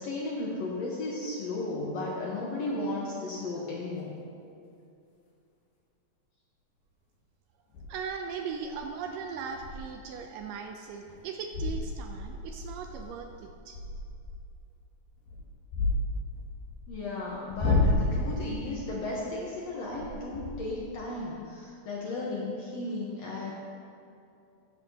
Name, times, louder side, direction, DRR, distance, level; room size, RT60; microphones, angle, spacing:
voice 1, 0.0-4.2 16.9-23.5, left 2 dB, 65° left, -4 dB, 1.7 m, -35 dB
sound 1, 4.0-4.1 7.7-8.0 8.5-8.8 9.1-9.2 9.5-9.9 10.4-10.5 11.0-11.2 11.5-14.4 15.1-16.9 17.4-18.5 19.9-20.9, left 2 dB, 85° left, 4.0 m, -31 dB
voice 2, 7.9-13.8, right 6 dB, 80° right, 4 dB, 2.0 m, -38 dB
14.5 x 11.0 x 2.8 m, 2.5 s
omnidirectional pair, 4.2 m